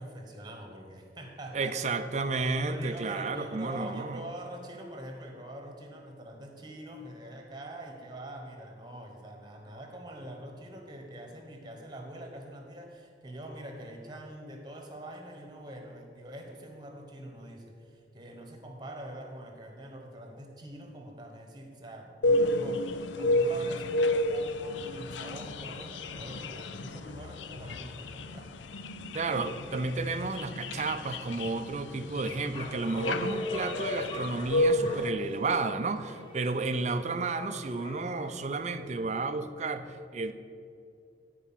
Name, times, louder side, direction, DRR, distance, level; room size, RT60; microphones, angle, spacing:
voice 1, 0.0-1.8 2.6-28.5, right 1 dB, 25° right, 3 dB, 1.1 m, -44 dB
voice 2, 1.5-4.2 29.1-40.3, right 3 dB, 40° right, 9 dB, 0.5 m, -32 dB
sound 1, 22.2-35.1, left 1 dB, 90° left, 0.5 m, -31 dB
Bark, 31.1-38.3, left 1 dB, 25° left, 1.8 m, -47 dB
13.0 x 4.7 x 5.7 m, 2.5 s
head